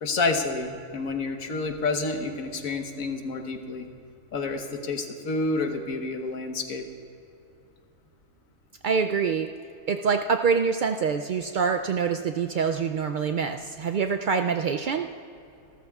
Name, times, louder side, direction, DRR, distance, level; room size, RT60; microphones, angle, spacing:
voice 1, 0.0-3.9 4.3-6.9, left 3 dB, 85° left, 5 dB, 1.6 m, -29 dB
voice 2, 8.8-9.5 9.9-15.1, right 5 dB, 85° right, 6 dB, 0.4 m, -25 dB
27.5 x 13.0 x 2.4 m, 2.6 s
omnidirectional pair, 1.4 m